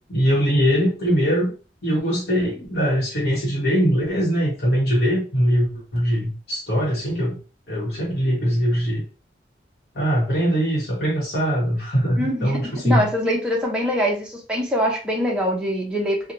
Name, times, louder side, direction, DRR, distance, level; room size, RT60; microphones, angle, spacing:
voice 1, 0.1-1.5 1.8-7.4 7.7-9.0 9.9-13.1, equal, 65° left, -5 dB, 1.0 m, -21 dB
voice 2, 12.2-16.3, equal, 5° right, -3 dB, 0.5 m, -23 dB
2.6 x 2.1 x 2.9 m, 0.34 s
head